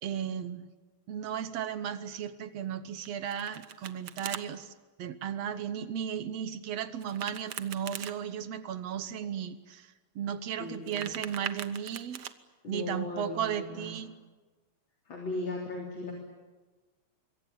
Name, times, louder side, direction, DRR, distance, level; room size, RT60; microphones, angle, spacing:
voice 1, 0.0-0.7 1.1-4.7 5.0-12.2 12.7-14.1, right 9 dB, 65° right, 12 dB, 2.0 m, -35 dB
Domestic sounds home sounds, 3.0-4.4 7.0-8.1 10.7-12.3, right 9 dB, 85° right, 0.9 m, -41 dB
voice 2, 10.6-11.1 12.6-14.0 15.1-16.1, left 2 dB, 40° left, 0 dB, 4.2 m, -37 dB
25.5 x 23.0 x 8.8 m, 1.3 s
omnidirectional pair, 3.3 m